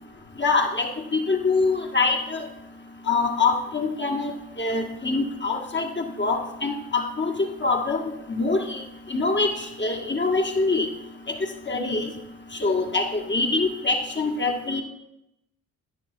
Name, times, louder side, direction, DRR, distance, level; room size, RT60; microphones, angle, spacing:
voice 1, 0.4-2.4 3.1-4.3 4.6-7.3 7.6-8.8 9.1-10.9 11.7-12.1 12.6-14.8, left 3 dB, 25° left, 1 dB, 1.7 m, -24 dB
11.0 x 6.8 x 3.9 m, 0.85 s
hypercardioid pair, 40°, 41 cm